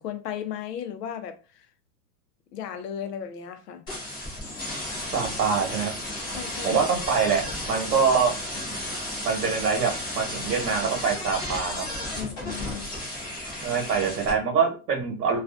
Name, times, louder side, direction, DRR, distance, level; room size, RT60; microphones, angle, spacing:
voice 1, 0.0-1.7 2.5-3.8 6.3-6.9 8.6-8.7 12.0-12.9, left 9 dB, 80° left, 0.7 m, -36 dB
sound 1, 3.9-14.3, left 1 dB, 10° left, 0.3 m, -33 dB
voice 2, 5.1-5.9 6.6-8.3 9.2-11.9 13.6-15.4, right 6 dB, 80° right, 1.1 m, -24 dB
2.3 x 2.3 x 2.4 m
hypercardioid pair, 125°, 47 cm